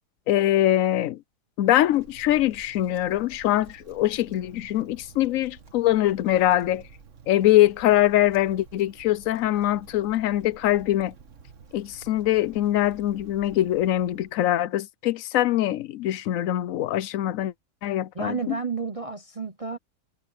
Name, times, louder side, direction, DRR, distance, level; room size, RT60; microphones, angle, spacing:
voice 1, 0.3-1.2 1.6-6.8 7.3-11.1 11.7-17.5 17.8-18.6, left 13 dB, 65° left, 0.9 m, -23 dB
Wind, 1.6-14.5, right 5 dB, 50° right, 1.8 m, -50 dB
voice 2, 18.1-19.8, right 4 dB, 30° right, 0.7 m, -31 dB
omnidirectional pair, 1.7 m